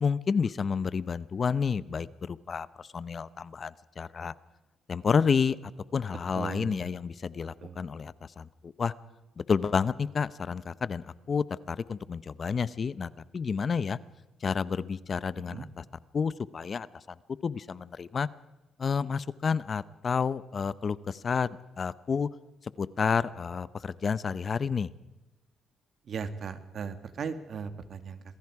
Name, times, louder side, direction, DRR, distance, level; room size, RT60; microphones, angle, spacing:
voice 1, 0.0-4.3 4.9-5.6 5.9-8.9 9.4-14.0 14.4-15.8 16.1-16.9 17.4-18.3 18.8-22.3 22.8-24.9, left 6 dB, 45° left, 17 dB, 0.7 m, -30 dB
voice 2, 6.3-6.9 7.6-7.8 15.5-15.7 26.0-28.2, right 6 dB, 55° right, 10 dB, 1.9 m, -37 dB
27.0 x 20.0 x 4.8 m, 1.1 s
cardioid pair, 90°, 0 cm